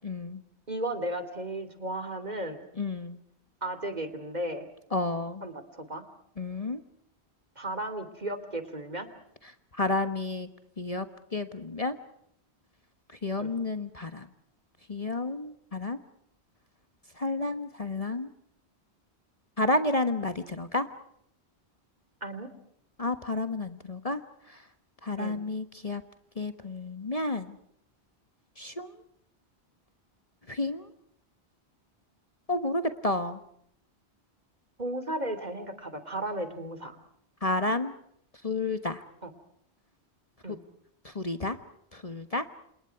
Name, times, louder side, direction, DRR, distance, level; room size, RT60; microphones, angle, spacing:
voice 1, 0.0-0.4 2.8-3.2 4.9-5.4 6.4-6.8 9.8-10.5 10.8-11.0 11.3-12.0 13.2-14.3 14.9-16.0 17.2-18.3 19.6-20.9 23.0-24.2 25.0-26.0 26.4-27.6 28.6-28.9 30.5-30.9 32.5-33.4 37.4-37.9 38.4-39.0 41.0-41.6 41.9-42.4, left 2 dB, 35° left, 9 dB, 1.3 m, -30 dB
voice 2, 0.7-2.6 3.6-4.7 5.4-6.0 7.6-9.1 13.4-13.5 22.2-22.5 25.2-25.4 34.8-37.0 39.2-39.3 40.4-40.6, right 1 dB, 40° right, 11 dB, 3.0 m, -35 dB
30.0 x 27.5 x 4.7 m, 0.71 s
omnidirectional pair, 1.1 m